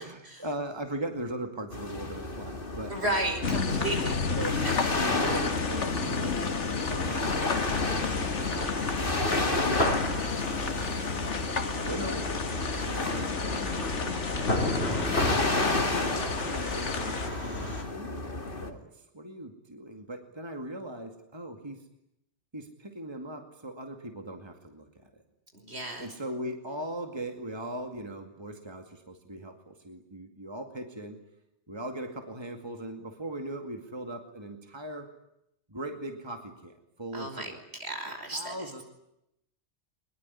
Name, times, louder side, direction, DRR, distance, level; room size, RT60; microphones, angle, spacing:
voice 1, 0.0-3.2 4.3-4.6 4.9-7.6 8.4-9.1 10.6-10.9 11.9-12.4 12.8-14.2 15.5-21.8 22.5-25.1 26.0-31.2 31.7-35.1 35.7-37.6 38.3-38.8, right 1 dB, 25° right, 5 dB, 2.4 m, -39 dB
sound 1, 1.7-18.7, left 2 dB, 50° left, 2.7 m, -33 dB
voice 2, 2.9-4.2 4.6-4.9 15.0-15.6 25.5-26.1 37.1-37.5 37.8-38.8, right 1 dB, 65° right, 5 dB, 5.8 m, -34 dB
sound 2, 3.4-17.3, left 5 dB, 85° left, 1.9 m, -32 dB
sound 3, 7.7-17.8, left 1 dB, 65° left, 5.1 m, -34 dB
23.5 x 21.5 x 9.8 m, 0.82 s
omnidirectional pair, 1.2 m